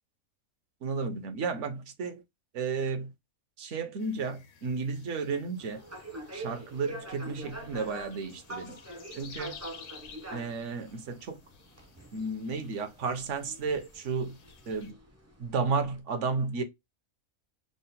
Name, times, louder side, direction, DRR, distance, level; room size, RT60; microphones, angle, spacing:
voice 1, 0.8-2.2 2.5-3.1 3.6-5.8 6.3-8.8 9.1-9.5 10.3-11.4 12.1-14.4 14.7-14.9 15.4-16.6, right 4 dB, 65° right, 0.9 m, -33 dB
sound 1, 4.0-14.9, left 7 dB, 60° left, 0.8 m, -54 dB
sound 2, 5.6-16.0, right 1 dB, 25° right, 0.3 m, -46 dB
3.7 x 2.1 x 4.0 m
omnidirectional pair, 1.5 m